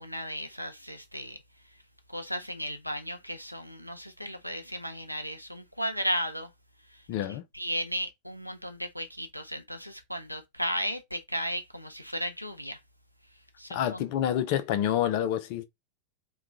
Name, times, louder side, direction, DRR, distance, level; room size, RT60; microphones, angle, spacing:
voice 1, 0.0-1.4 2.1-6.5 7.5-12.8 13.6-14.1, equal, 90° right, 0.5 m, -35 dB
voice 2, 7.1-7.4 13.7-15.6, left 10 dB, 45° left, 0.5 m, -28 dB
2.9 x 2.3 x 3.6 m
figure-of-eight pair, 90°, 0 cm